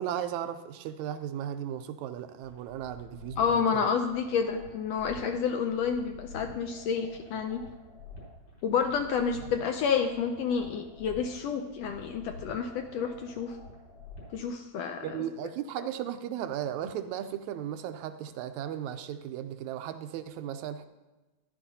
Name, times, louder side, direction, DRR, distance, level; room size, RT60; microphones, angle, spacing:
voice 1, 0.0-3.9 15.0-20.9, right 10 dB, 85° right, 9 dB, 2.0 m, -36 dB
sound 1, 2.4-14.4, left 2 dB, 55° left, 4.3 m, -48 dB
voice 2, 3.4-7.6 8.6-13.6 14.3-15.0, left 6 dB, 75° left, 5 dB, 1.6 m, -29 dB
14.0 x 11.0 x 2.8 m, 1.1 s
omnidirectional pair, 3.3 m